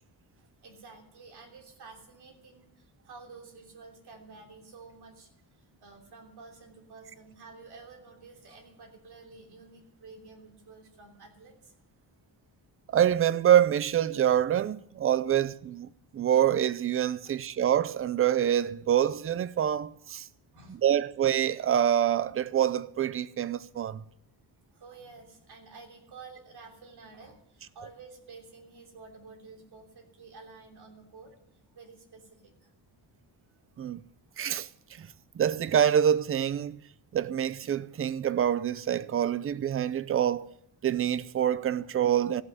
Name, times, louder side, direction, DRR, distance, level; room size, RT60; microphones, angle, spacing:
voice 1, 0.4-11.7 17.2-17.3 20.5-20.8 24.7-31.3 31.7-32.7 34.3-34.4 35.1-35.2, right 4 dB, 65° right, 3.2 m, -51 dB
voice 2, 12.9-20.3 20.7-24.0 33.8-34.0 34.4-35.1 35.3-36.8 37.1-40.5 40.8-42.4, right 10 dB, 35° right, 0.4 m, -26 dB
15.0 x 6.2 x 9.1 m
wide cardioid pair, 170°, 42 cm